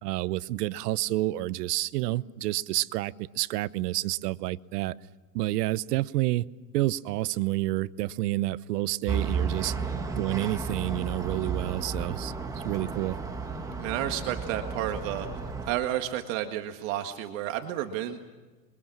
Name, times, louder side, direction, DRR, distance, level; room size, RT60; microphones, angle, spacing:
voice 1, 0.0-4.9 5.3-6.4 6.7-9.7 10.2-12.3 12.6-13.2, right 17 dB, 75° right, 17 dB, 0.9 m, -29 dB
sound 1, 9.1-15.7, right 5 dB, 5° right, 1.5 m, -33 dB
voice 2, 13.8-15.3 15.7-18.2, right 12 dB, 55° right, 5 dB, 1.8 m, -31 dB
28.0 x 23.5 x 7.4 m, 1.3 s
supercardioid pair, 170°, 48 cm